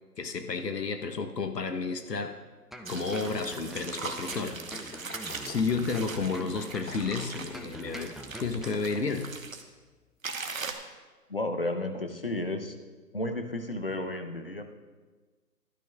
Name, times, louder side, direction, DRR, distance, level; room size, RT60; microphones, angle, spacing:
voice 1, 0.2-2.4 2.9-5.1 5.4-8.1 8.4-9.3, left 4 dB, 80° left, 7 dB, 1.1 m, -32 dB
sound 1, 2.7-9.0 9.3-9.4, equal, ahead, 0.3 m, -44 dB
sound 2, 2.8-9.6 10.2-10.7, right 4 dB, 55° right, 1.1 m, -40 dB
sound 3, 4.5-9.5, left 3 dB, 60° left, 1.4 m, -50 dB
voice 2, 11.3-12.8 13.1-14.7, left 1 dB, 35° left, 7 dB, 0.7 m, -32 dB
16.0 x 12.5 x 2.4 m, 1.4 s
figure-of-eight pair, 170°, 48 cm